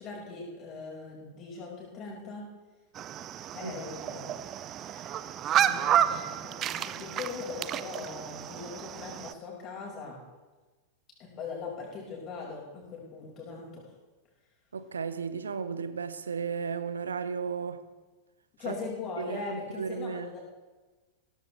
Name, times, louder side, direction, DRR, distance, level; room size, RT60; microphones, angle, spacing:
voice 1, 0.0-2.4 3.5-4.4 4.8-5.2 5.5-10.2 11.2-13.9 18.6-20.4, left 4 dB, 35° left, 5.5 m, -40 dB
sound 1, 3.0-9.3, right 10 dB, 30° right, 0.5 m, -31 dB
voice 2, 14.7-17.8 18.7-18.8 19.2-20.3, right 6 dB, 70° right, 0.7 m, -34 dB
17.0 x 15.0 x 3.4 m
figure-of-eight pair, 90°, 0 cm